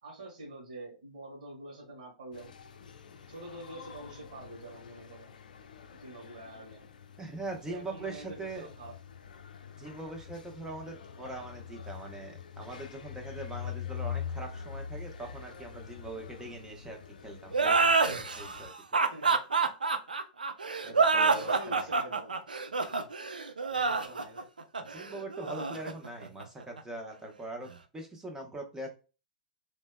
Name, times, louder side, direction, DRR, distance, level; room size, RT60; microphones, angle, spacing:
voice 1, 0.0-2.6 3.3-5.4 5.8-6.9 7.7-8.9 19.1-19.7 21.3-22.3 23.7-24.5, right 2 dB, 65° right, -3 dB, 1.8 m, -46 dB
sound 1, 2.3-18.7, left 7 dB, 70° left, 0.5 m, -44 dB
voice 2, 7.2-8.7 9.8-19.0 20.8-21.9 24.8-28.9, right 2 dB, 10° right, 2 dB, 1.0 m, -42 dB
sound 2, 17.5-26.8, right 4 dB, 85° right, 0.5 m, -27 dB
3.3 x 3.2 x 2.2 m, 0.32 s
figure-of-eight pair, 105°, 5 cm